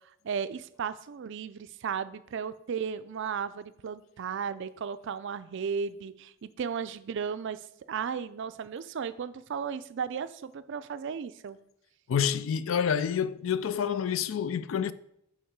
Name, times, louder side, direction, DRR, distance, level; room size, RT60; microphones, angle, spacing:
voice 1, 0.2-7.6 7.9-11.6, right 6 dB, 60° right, 0.4 m, -35 dB
voice 2, 12.1-14.9, left 7 dB, 70° left, 0.4 m, -28 dB
6.4 x 5.0 x 4.7 m
head